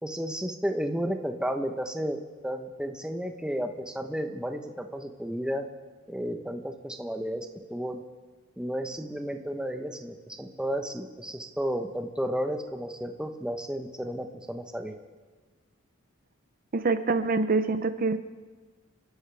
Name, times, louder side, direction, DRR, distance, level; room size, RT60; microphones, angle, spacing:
voice 1, 0.0-5.7 6.1-8.0 8.6-15.0, equal, 5° right, 5 dB, 0.9 m, -32 dB
voice 2, 16.7-18.2, right 3 dB, 45° right, 10 dB, 0.6 m, -25 dB
30.0 x 12.5 x 3.4 m, 1.4 s
head